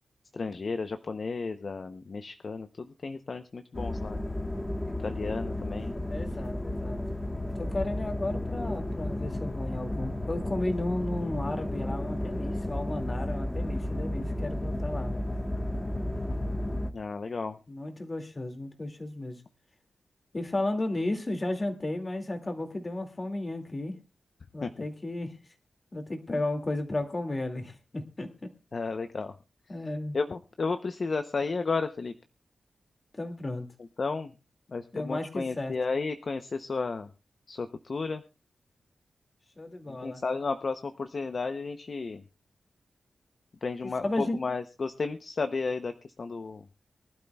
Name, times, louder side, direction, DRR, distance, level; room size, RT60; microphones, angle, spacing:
voice 1, 0.3-4.2 5.0-5.9 16.9-17.6 24.6-24.9 28.7-29.3 30.1-32.1 34.0-34.3 34.7-37.1 37.5-38.2 39.9-42.2 43.6-45.9 46.2-46.7, left 4 dB, 45° left, 8 dB, 0.7 m, -33 dB
sound 1, 3.7-16.9, left 1 dB, 15° left, 1.2 m, -33 dB
voice 2, 6.1-7.0 7.5-15.2 17.7-19.4 20.3-24.0 24.5-25.3 25.9-28.3 29.7-30.2 33.1-33.7 34.9-35.7 39.6-40.2 44.0-44.4, left 2 dB, 30° left, 5 dB, 2.2 m, -33 dB
23.5 x 12.0 x 2.3 m, 0.30 s
wide cardioid pair, 125°, 0 cm